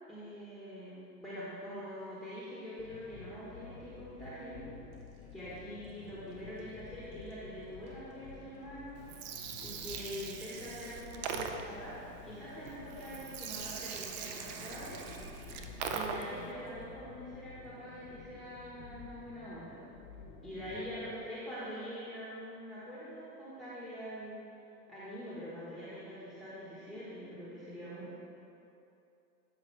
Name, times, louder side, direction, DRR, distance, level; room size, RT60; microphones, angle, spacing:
voice 1, 0.1-4.6 5.3-9.0 9.6-15.0 15.9-19.8 20.4-24.4 24.9-28.1, equal, ahead, -10 dB, 1.5 m, -44 dB
sound 1, 2.0-2.5 3.0-3.1 4.1-4.3 4.9-16.9, right 2 dB, 55° right, 1.7 m, -58 dB
sound 2, 2.8-21.2, left 6 dB, 40° left, 0.8 m, -51 dB
Gurgling, 9.0-16.5, right 6 dB, 30° right, 0.4 m, -41 dB
12.5 x 5.1 x 3.4 m, 2.8 s
hypercardioid pair, 110°, 49 cm